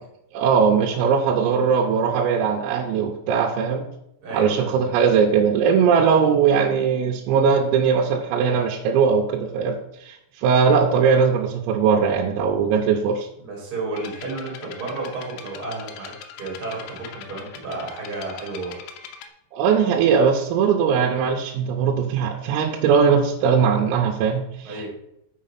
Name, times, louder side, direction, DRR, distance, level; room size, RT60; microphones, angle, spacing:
voice 1, 0.3-3.9 4.3-13.3 19.5-24.9, right 6 dB, 90° right, 1 dB, 3.4 m, -20 dB
voice 2, 4.2-4.9 13.4-18.8 24.6-24.9, right 3 dB, 30° right, -3 dB, 2.1 m, -32 dB
sound 1, 14.0-19.3, left 7 dB, 80° left, 2.8 m, -41 dB
6.4 x 5.8 x 5.7 m, 0.80 s
omnidirectional pair, 6.0 m